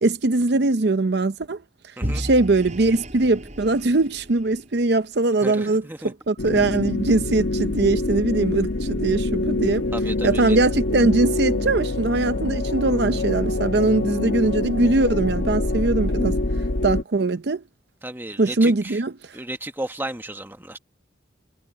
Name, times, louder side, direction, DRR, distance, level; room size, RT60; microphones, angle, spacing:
voice 1, 0.0-1.6 2.1-9.9 10.2-16.4 16.8-17.6 18.4-19.1, right 2 dB, 60° right, 0.7 m, -21 dB
Vehicle / Engine, 2.0-5.0, equal, 40° right, 7.4 m, -33 dB
voice 2, 5.4-6.1 6.7-6.8 9.9-10.6 18.0-19.0 19.3-20.8, right 1 dB, 10° right, 1.3 m, -34 dB
sound 1, 6.4-17.0, left 2 dB, 75° left, 1.2 m, -25 dB
head